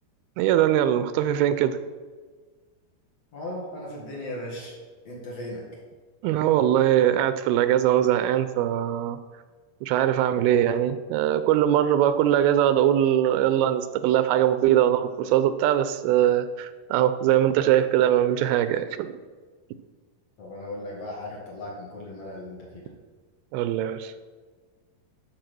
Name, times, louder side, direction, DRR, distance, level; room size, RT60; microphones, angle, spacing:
voice 1, 0.4-1.8 6.2-9.2 9.8-19.2 23.5-24.1, right 11 dB, 85° right, 11 dB, 2.4 m, -22 dB
voice 2, 3.3-4.8 5.0-5.6 20.4-22.9, left 1 dB, 50° left, -4 dB, 2.5 m, -37 dB
12.5 x 4.7 x 6.1 m, 1.4 s
omnidirectional pair, 4.5 m